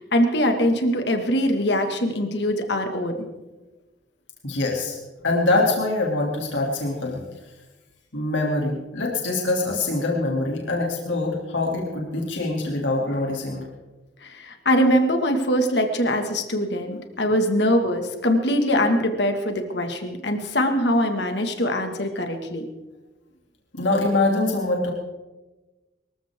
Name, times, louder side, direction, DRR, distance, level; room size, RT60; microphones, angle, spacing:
voice 1, 0.0-3.3 14.2-22.7, equal, 65° left, 5 dB, 2.1 m, -22 dB
voice 2, 4.4-5.0 5.2-7.2 8.1-13.6 23.7-24.9, left 2 dB, 90° left, -1 dB, 3.0 m, -24 dB
24.0 x 15.0 x 3.8 m, 1.1 s
head